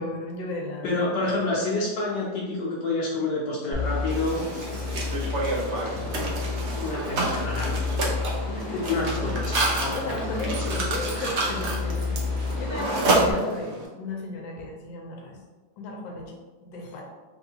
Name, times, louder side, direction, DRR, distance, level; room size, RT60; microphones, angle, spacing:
voice 1, 0.0-0.9 8.5-9.4 9.9-12.2 12.6-15.4 15.8-17.0, left 2 dB, 85° left, 0 dB, 1.3 m, -34 dB
voice 2, 0.8-4.5 5.8-7.8 8.7-10.8 12.7-12.9, left 2 dB, 70° left, -5 dB, 1.2 m, -29 dB
sound 1, 3.7-13.3, left 4 dB, 40° left, 0.8 m, -31 dB
Mechanisms, 4.1-13.9, right 2 dB, 90° right, 0.6 m, -29 dB
3.5 x 2.6 x 2.7 m, 1.3 s
omnidirectional pair, 2.0 m